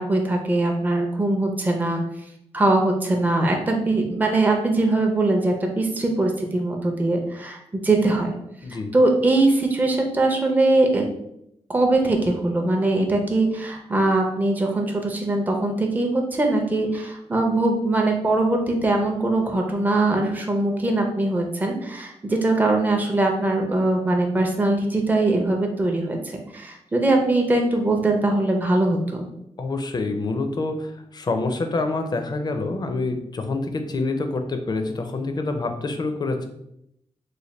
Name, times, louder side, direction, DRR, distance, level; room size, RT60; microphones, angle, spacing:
voice 1, 0.0-2.0 2.5-8.3 8.9-11.0 11.7-29.3, right 2 dB, 15° right, 2 dB, 0.5 m, -21 dB
voice 2, 8.6-8.9 29.6-36.4, left 3 dB, 40° left, 6 dB, 0.4 m, -27 dB
3.2 x 2.2 x 4.0 m, 0.78 s
wide cardioid pair, 110°, 11 cm